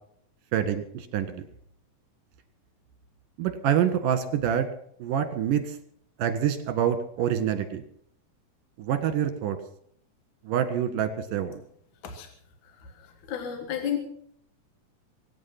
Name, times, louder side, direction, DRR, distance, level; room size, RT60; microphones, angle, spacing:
voice 1, 0.5-1.4 3.4-4.7 5.0-5.6 6.2-7.8 8.8-9.6 10.4-11.6, right 9 dB, 75° right, 10 dB, 3.2 m, -26 dB
voice 2, 13.3-14.0, left 9 dB, 65° left, 5 dB, 2.9 m, -31 dB
23.5 x 9.9 x 5.9 m, 0.65 s
omnidirectional pair, 3.9 m